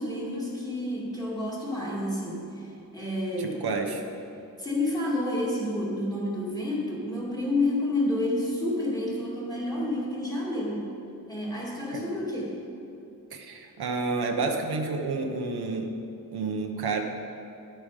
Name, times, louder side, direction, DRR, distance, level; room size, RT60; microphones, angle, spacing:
voice 1, 0.0-3.6 4.6-10.9 11.3-12.5, left 1 dB, 10° left, -4 dB, 2.3 m, -29 dB
voice 2, 3.4-4.0 11.9-12.0 13.3-15.9 16.3-17.0, right 4 dB, 90° right, 3 dB, 1.1 m, -30 dB
11.0 x 9.1 x 5.0 m, 2.7 s
wide cardioid pair, 155°, 37 cm